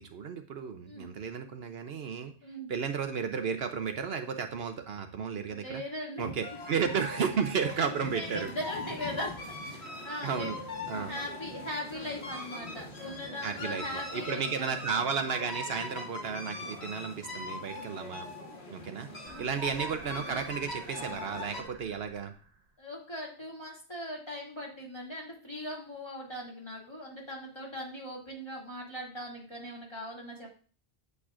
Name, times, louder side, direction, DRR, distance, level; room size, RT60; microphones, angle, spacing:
voice 1, 0.0-2.3 2.7-5.8 6.2-8.5 10.2-10.6 10.9-11.1 13.4-18.3 18.7-22.3, right 6 dB, 70° right, 7 dB, 0.9 m, -33 dB
voice 2, 5.5-6.3 7.6-10.5 10.9-14.8 16.6-16.7 19.3-19.5 22.8-30.5, left 1 dB, 25° left, -3 dB, 2.2 m, -40 dB
sound 1, 6.4-21.6, left 2 dB, 70° left, 1.7 m, -41 dB
sound 2, 19.2-22.8, right 3 dB, 40° right, 1.0 m, -53 dB
8.5 x 8.1 x 2.4 m, 0.40 s
omnidirectional pair, 1.1 m